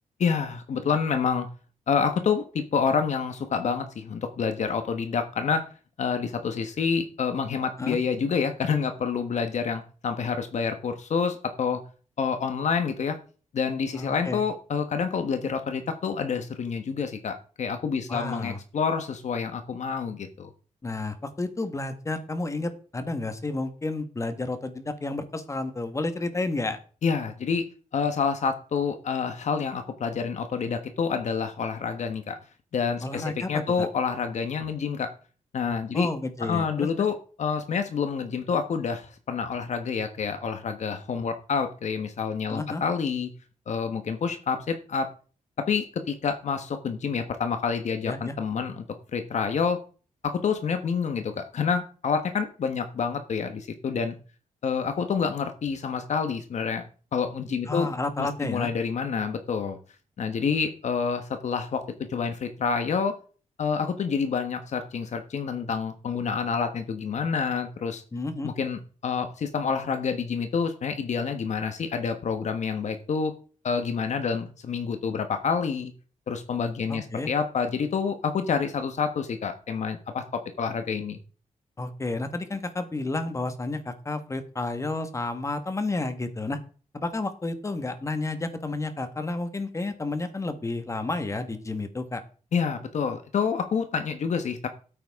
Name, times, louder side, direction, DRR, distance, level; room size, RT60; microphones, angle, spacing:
voice 1, 0.2-1.5 1.9-5.6 6.0-11.8 12.2-13.2 13.5-20.5 27.0-27.6 27.9-32.4 32.7-35.1 35.5-36.1 36.4-43.3 43.7-45.1 45.6-48.8 49.1-49.8 50.2-54.1 54.6-56.8 57.1-57.9 58.2-59.8 60.2-61.8 62.1-63.2 63.6-68.0 68.4-73.3 73.6-75.9 76.3-81.2 92.5-94.7, left 6 dB, 65° left, 7 dB, 1.3 m, -28 dB
voice 2, 13.9-14.4 18.1-18.6 20.8-26.8 33.0-33.9 35.9-36.9 42.5-42.8 48.1-48.3 57.7-58.7 68.1-68.5 76.9-77.3 81.8-86.6 86.9-92.2, left 2 dB, 25° left, 9 dB, 1.5 m, -31 dB
15.0 x 8.6 x 3.7 m, 0.40 s
wide cardioid pair, 140°, 13 cm